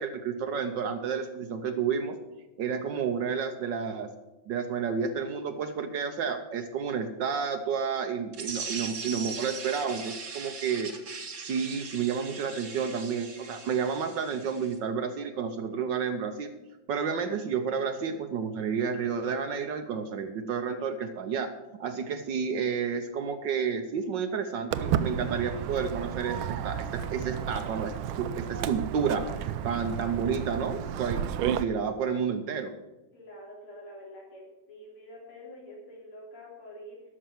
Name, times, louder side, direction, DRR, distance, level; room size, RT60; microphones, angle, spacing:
voice 1, 0.0-2.2 2.6-4.1 4.5-10.9 11.4-16.5 16.9-21.5 21.8-32.7, right 6 dB, 65° right, 8 dB, 1.3 m, -31 dB
sound 1, 8.3-14.7, right 4 dB, 40° right, 1.4 m, -40 dB
Walk footsteps, 24.7-31.6, right 9 dB, 80° right, 1.4 m, -32 dB
voice 2, 33.1-37.0, left 1 dB, 75° left, -3 dB, 4.2 m, -46 dB
12.5 x 6.4 x 7.7 m, 1.1 s
omnidirectional pair, 2.3 m